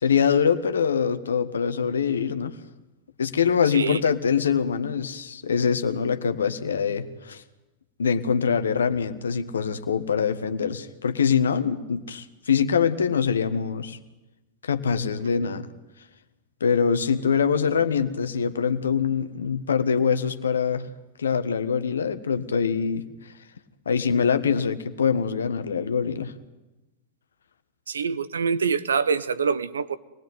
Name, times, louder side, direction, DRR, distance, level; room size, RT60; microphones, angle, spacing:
voice 1, 0.0-2.6 3.2-7.4 8.0-14.0 14.6-15.7 16.6-20.9 21.2-23.3 23.8-26.3, left 6 dB, 75° left, 1.6 m, -24 dB
voice 2, 27.9-29.9, right 5 dB, 80° right, 1.0 m, -25 dB
26.0 x 20.0 x 9.4 m
figure-of-eight pair, 95°, 0 cm